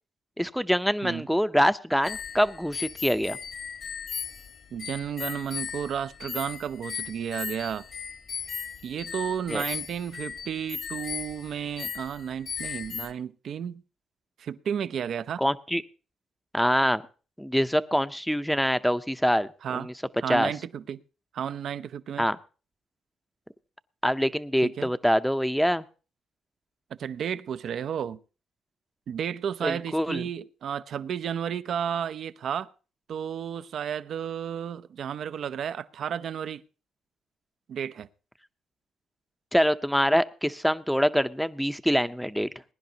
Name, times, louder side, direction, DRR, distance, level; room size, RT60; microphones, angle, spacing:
voice 1, 0.4-3.4 9.5-9.6 15.4-15.8 16.5-17.0 17.4-19.9 20.3-20.5 22.2-22.4 24.0-25.8 29.6-30.2 39.5-42.5, equal, ahead, 0.7 m, -25 dB
sound 1, 2.0-13.1, left 6 dB, 55° left, 1.5 m, -37 dB
voice 2, 4.7-7.8 8.8-13.8 14.4-15.4 19.6-19.9 20.2-21.0 21.3-22.2 24.6-24.9 27.0-28.2 29.1-32.7 33.1-36.6 37.7-38.1, right 8 dB, 65° right, 0.6 m, -32 dB
21.0 x 10.5 x 2.9 m
cardioid pair, 90°, 0 cm